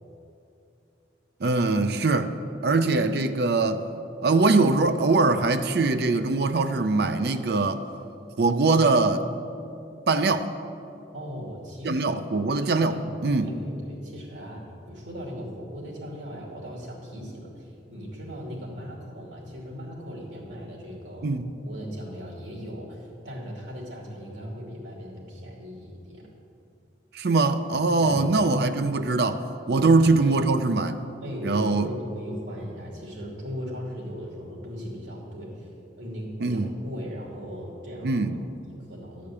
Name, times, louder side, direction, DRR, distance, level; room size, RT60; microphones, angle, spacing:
voice 1, 1.4-2.4 2.6-3.8 4.2-7.8 8.4-9.3 10.1-10.5 11.8-13.5 21.2-21.5 27.1-29.4 29.7-31.0 31.4-31.9 36.4-36.7 38.0-38.3, right 3 dB, 55° right, 9 dB, 0.5 m, -22 dB
voice 2, 11.1-12.0 12.8-13.1 13.4-21.3 21.6-26.2 28.0-28.2 29.7-29.9 31.2-35.7 36.0-39.3, equal, 75° right, -3 dB, 2.8 m, -38 dB
11.5 x 5.1 x 8.4 m, 2.6 s
head